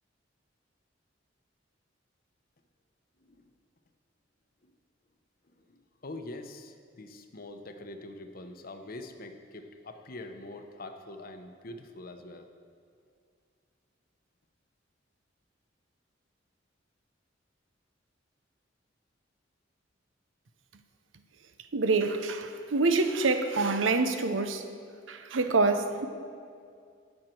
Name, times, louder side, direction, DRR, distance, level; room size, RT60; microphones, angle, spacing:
voice 1, 3.2-3.5 4.6-4.7 5.6-12.5, left 2 dB, 50° left, 0.8 m, -44 dB
voice 2, 21.7-24.6 25.1-26.1, right 3 dB, 90° right, 0.7 m, -26 dB
16.5 x 6.4 x 4.5 m
head